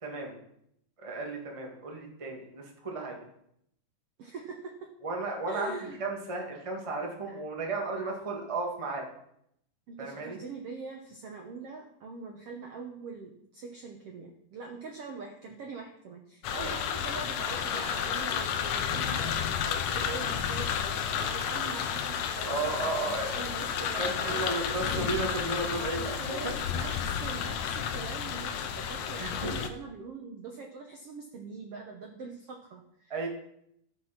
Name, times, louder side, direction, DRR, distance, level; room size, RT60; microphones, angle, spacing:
voice 1, 0.0-0.4 1.0-3.2 5.0-5.7 6.0-9.1 10.0-10.4 16.6-16.8 22.4-23.6 24.0-26.5 29.1-29.5 33.1-33.3, right 3 dB, 30° right, 0 dB, 0.5 m, -34 dB
voice 2, 4.2-4.9 5.5-6.0 7.3-7.4 9.9-24.9 25.8-33.3, right 4 dB, 90° right, 2 dB, 1.3 m, -43 dB
sound 1, 16.4-29.7, left 8 dB, 80° left, 1.6 m, -32 dB
13.0 x 6.1 x 5.9 m, 0.75 s
omnidirectional pair, 4.2 m